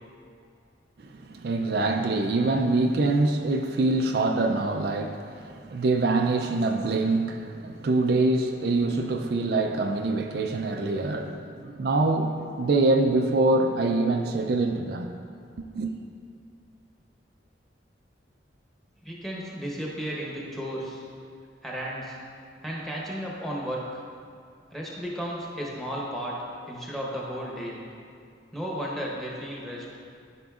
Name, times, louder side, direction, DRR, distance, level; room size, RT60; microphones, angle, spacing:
voice 1, 1.0-15.1 15.7-15.9, right 2 dB, 55° right, 4 dB, 0.4 m, -25 dB
voice 2, 19.0-21.0 21.6-22.2 22.6-24.0 24.7-26.4 26.7-27.8 28.5-29.9, equal, ahead, -4 dB, 1.0 m, -34 dB
12.5 x 5.0 x 2.4 m, 2.3 s
head